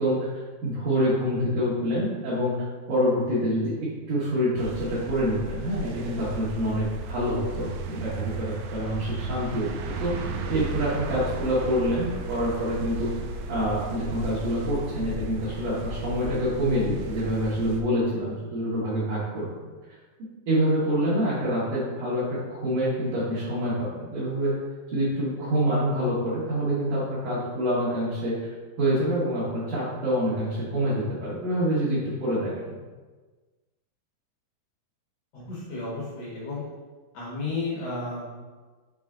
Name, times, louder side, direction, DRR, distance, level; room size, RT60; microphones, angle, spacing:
voice 1, 0.0-2.6 2.9-13.1 13.5-19.5 20.5-24.5 24.9-28.4 28.8-32.8, equal, 60° right, -10 dB, 2.4 m, -26 dB
sound 1, 4.6-17.8, right 1 dB, 85° right, 2.2 m, -35 dB
voice 2, 35.3-36.6 37.1-38.4, left 3 dB, 65° left, -7 dB, 1.7 m, -33 dB
6.5 x 4.0 x 3.7 m, 1.3 s
omnidirectional pair, 4.8 m